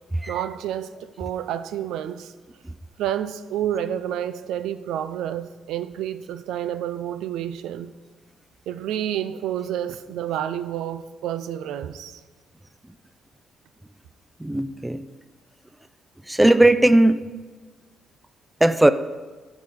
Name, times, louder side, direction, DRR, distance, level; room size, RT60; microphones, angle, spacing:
voice 1, 0.3-2.3 3.0-7.9 8.7-12.2, right 10 dB, 85° right, 0.4 m, -29 dB
voice 2, 14.4-15.0 16.3-17.2 18.6-18.9, right 1 dB, 10° right, 0.4 m, -17 dB
14.5 x 5.0 x 5.4 m
cardioid pair, 90°, 0 cm